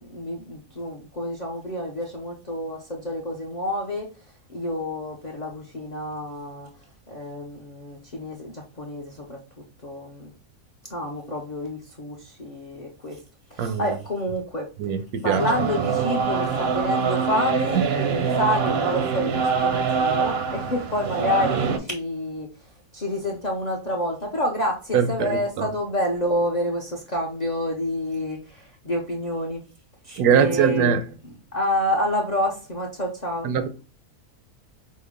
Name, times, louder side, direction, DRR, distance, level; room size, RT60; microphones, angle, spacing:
voice 1, 0.0-4.1 4.5-6.7 7.1-9.4 9.8-10.3 10.9-13.2 13.5-14.7 15.2-22.5 22.9-29.6 30.0-30.9 31.2-33.5, left 1 dB, 50° left, 0.5 m, -28 dB
voice 2, 13.6-14.0 14.8-15.4 17.7-17.8 24.9-25.7 30.2-31.0 33.4-33.7, right 7 dB, 80° right, 1.1 m, -22 dB
sound 1, 15.4-21.8, right 6 dB, 55° right, 0.7 m, -24 dB
5.2 x 2.1 x 3.5 m
omnidirectional pair, 1.6 m